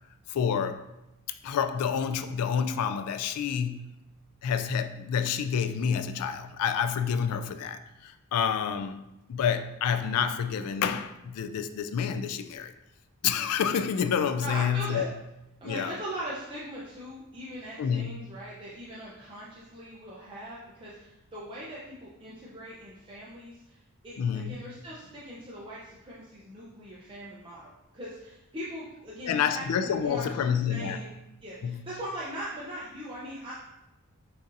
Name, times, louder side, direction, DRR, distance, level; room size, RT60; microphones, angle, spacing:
voice 1, 0.3-0.9 1.4-3.9 4.4-12.7 13.2-15.1 15.6-16.0 17.8-18.3 24.2-24.7 29.2-31.0 31.6-31.9, left 7 dB, 90° left, 11 dB, 0.3 m, -28 dB
voice 2, 14.4-15.0 15.6-31.1 31.4-33.5, right 1 dB, 25° right, -7 dB, 0.6 m, -40 dB
6.4 x 2.7 x 2.6 m, 0.92 s
head